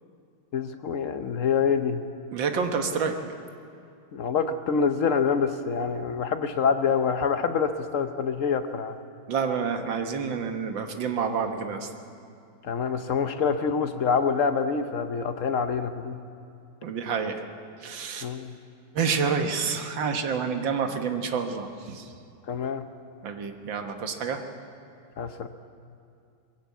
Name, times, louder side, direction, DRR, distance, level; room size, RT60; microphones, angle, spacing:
voice 1, 0.5-2.0 4.1-9.0 12.6-16.2 18.2-18.5 22.5-22.9 25.2-25.5, left 6 dB, 65° left, 8 dB, 0.7 m, -26 dB
voice 2, 2.3-3.2 9.3-11.9 16.8-17.3 17.8-18.3 18.9-22.1 23.2-24.4, right 5 dB, 60° right, 5 dB, 2.0 m, -28 dB
21.5 x 16.5 x 8.3 m, 2.4 s
omnidirectional pair, 2.4 m